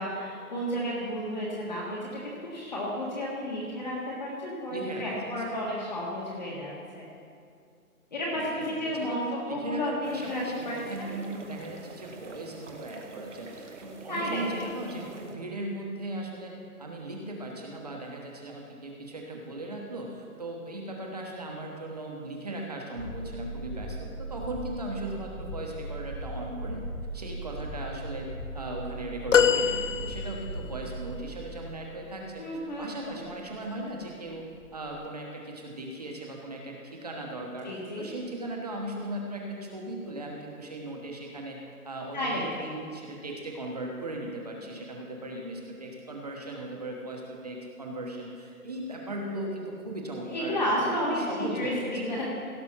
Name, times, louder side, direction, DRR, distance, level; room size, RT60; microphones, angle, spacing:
voice 1, 0.0-2.0 2.2-7.0 8.1-11.1 14.1-14.7 32.4-33.2 37.6-38.1 42.1-42.7 50.3-52.2, equal, 30° left, -5 dB, 1.6 m, -32 dB
voice 2, 4.7-5.6 8.3-9.2 9.5-16.5 16.8-26.8 27.1-32.4 32.8-34.4 34.7-41.6 41.8-52.1, right 1 dB, 25° right, 0 dB, 1.2 m, -38 dB
sound 1, 10.0-15.4, right 3 dB, 50° right, 1.3 m, -46 dB
sound 2, 22.9-32.0, right 1 dB, 15° left, 1.0 m, -38 dB
sound 3, 29.3-30.7 33.1-33.3 34.6-34.7, left 7 dB, 55° left, 0.5 m, -24 dB
16.5 x 5.9 x 5.7 m, 2.4 s
hypercardioid pair, 175°, 45 cm